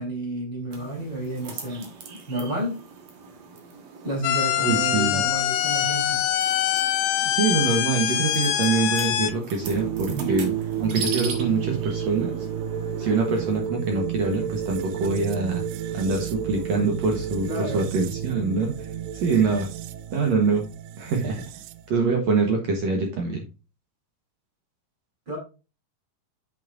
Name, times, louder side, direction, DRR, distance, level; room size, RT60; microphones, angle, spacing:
voice 1, 0.0-2.8 4.0-6.2 10.1-10.4 17.5-18.0 25.3-25.4, right 1 dB, 25° right, -2 dB, 3.5 m, -31 dB
sound 1, 0.7-13.6, right 5 dB, 55° right, 2.1 m, -40 dB
sound 2, 4.2-9.3, left 12 dB, 85° left, 2.6 m, -24 dB
voice 2, 4.6-5.2 7.3-10.5 10.8-12.4 13.0-15.6 15.9-19.7 20.1-20.6 21.0-21.4 21.9-23.4, right 4 dB, 70° right, 2 dB, 1.6 m, -24 dB
sound 3, 9.6-21.9, right 9 dB, 90° right, 2.6 m, -31 dB
8.0 x 7.0 x 2.5 m, 0.31 s
omnidirectional pair, 4.6 m